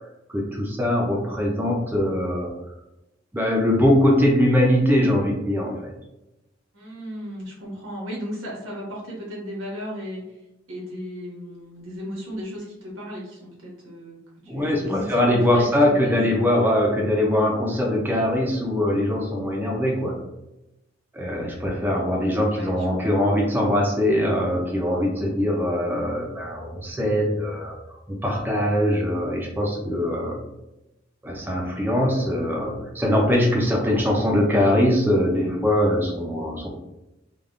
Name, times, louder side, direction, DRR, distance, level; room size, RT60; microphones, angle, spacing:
voice 1, 0.3-2.5 3.3-5.9 14.5-20.1 21.1-27.7 28.1-30.4 31.2-36.7, left 1 dB, 10° right, -2 dB, 0.4 m, -22 dB
voice 2, 6.7-10.2 10.7-14.2 14.4-16.4 22.5-22.9 23.1-23.2, equal, 90° right, -4 dB, 1.3 m, -35 dB
3.4 x 2.2 x 2.4 m, 0.94 s
head